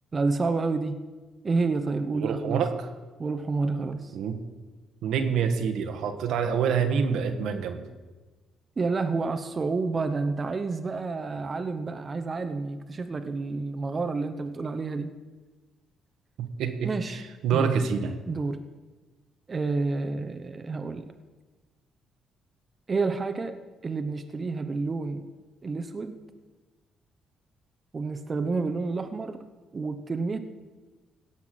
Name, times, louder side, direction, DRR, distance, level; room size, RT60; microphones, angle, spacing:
voice 1, 0.1-1.0 1.4-2.6 3.2-4.2 8.8-15.1 16.8-17.2 17.5-17.7 18.3-18.6 19.5-21.1 22.9-23.6 23.8-25.3 25.6-26.2 27.9-29.4 29.7-30.4, right 3 dB, 35° right, 8 dB, 0.9 m, -29 dB
voice 2, 2.1-2.9 4.1-4.4 5.0-7.8 16.4-18.1, right 6 dB, 80° right, 7 dB, 1.4 m, -27 dB
17.0 x 5.9 x 7.7 m, 1.2 s
cardioid pair, 90°, 0 cm